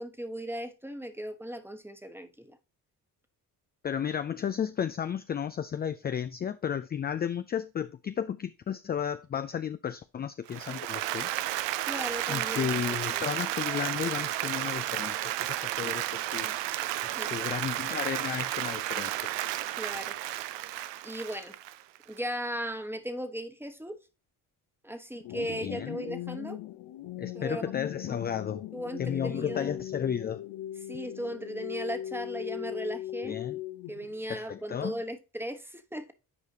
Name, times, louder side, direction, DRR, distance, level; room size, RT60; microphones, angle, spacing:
voice 1, 0.0-2.6 11.8-13.3 17.1-17.5 19.8-20.1 21.0-21.6 22.1-24.0 24.8-26.6 27.3-27.6 28.7-29.8 30.9-33.4 33.9-36.1, equal, 5° right, 1.1 m, -37 dB
voice 2, 3.8-11.3 12.3-15.4 15.6-16.5 17.3-19.1 25.3-26.0 27.2-28.6 29.0-30.4 33.2-33.6 34.3-35.0, left 8 dB, 25° left, 0.3 m, -33 dB
Applause, 10.5-22.2, right 14 dB, 65° right, 0.6 m, -32 dB
sound 1, 25.2-34.2, left 12 dB, 60° left, 0.6 m, -39 dB
9.6 x 4.8 x 2.8 m
hypercardioid pair, 45°, 47 cm